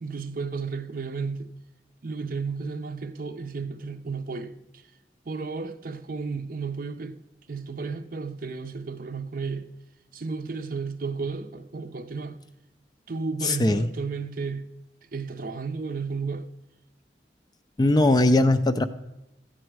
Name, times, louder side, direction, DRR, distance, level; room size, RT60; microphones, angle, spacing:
voice 1, 0.0-1.5 2.0-4.8 5.3-7.2 7.5-9.7 10.1-12.4 13.1-14.7 15.1-16.5, right 4 dB, 50° right, 0.6 m, -33 dB
voice 2, 13.4-13.9 17.8-18.8, left 2 dB, 20° left, 0.4 m, -20 dB
13.0 x 8.9 x 4.7 m
head